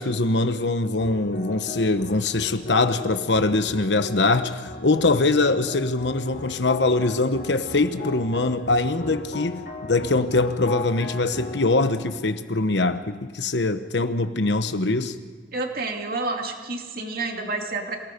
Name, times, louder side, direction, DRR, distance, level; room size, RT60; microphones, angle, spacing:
voice 1, 0.0-15.2, left 2 dB, 80° left, 1.1 m, -23 dB
sound 1, 1.0-13.5, left 3 dB, 60° left, 2.2 m, -38 dB
voice 2, 15.5-18.0, right 3 dB, 55° right, 2.4 m, -29 dB
27.0 x 18.5 x 5.2 m
head